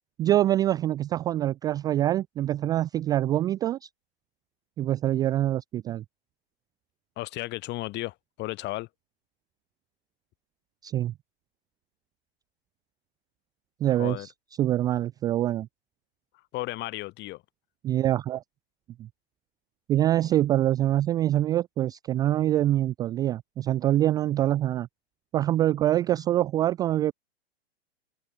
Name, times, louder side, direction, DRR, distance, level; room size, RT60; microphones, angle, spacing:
voice 1, 0.2-3.9 4.8-6.0 10.8-11.1 13.8-14.3 14.6-15.7 17.8-18.4 19.0-19.1 19.9-24.9 25.3-27.1, right 13 dB, 10° right, 0.3 m, -25 dB
voice 2, 7.2-8.9 13.9-14.3 16.5-17.4, left 19 dB, 35° left, 2.1 m, -34 dB
hypercardioid pair, 120°, 32 cm